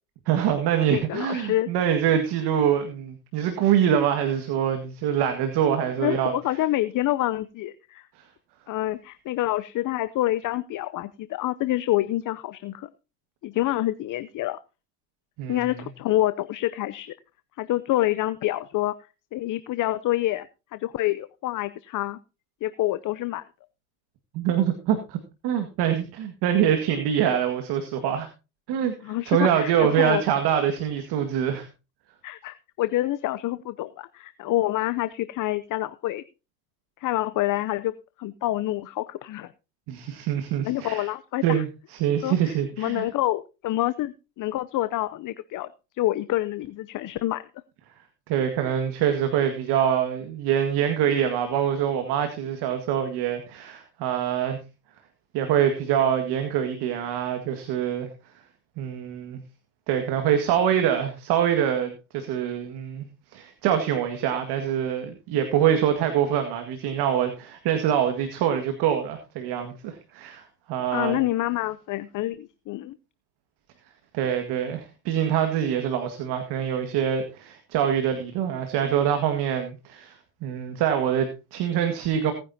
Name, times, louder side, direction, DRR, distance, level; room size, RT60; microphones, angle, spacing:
voice 1, 0.3-6.3 15.4-15.7 24.3-25.2 25.4-28.3 28.7-31.7 39.9-41.1 41.4-43.0 48.3-54.6 55.3-58.1 58.8-59.4 59.9-63.1 63.3-71.2 74.1-80.2 80.4-82.3, right 9 dB, 65° right, 6 dB, 2.0 m, -25 dB
voice 2, 0.9-1.7 6.0-8.1 8.7-12.9 13.4-14.6 15.5-17.1 17.6-18.9 19.3-20.5 20.7-22.2 22.6-23.4 29.0-30.2 32.2-36.2 37.0-37.9 38.2-39.5 40.6-41.6 42.2-45.7 45.9-47.4 70.9-73.0, left 15 dB, 45° left, 13 dB, 0.7 m, -27 dB
18.0 x 9.9 x 2.8 m, 0.29 s
hypercardioid pair, 85°, 44 cm